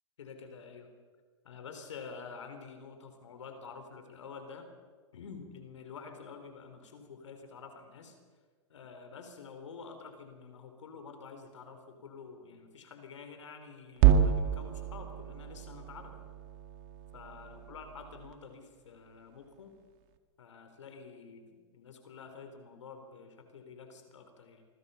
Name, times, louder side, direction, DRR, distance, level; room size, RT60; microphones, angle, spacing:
voice 1, 0.2-0.9 1.4-4.7 5.1-8.2 8.7-16.1 17.1-19.8 20.4-24.7, left 5 dB, 80° left, 7 dB, 4.0 m, -48 dB
sound 1, 14.0-18.3, right 9 dB, 50° right, 2.0 m, -29 dB
27.5 x 22.0 x 5.7 m, 1.5 s
hypercardioid pair, 110°, 15 cm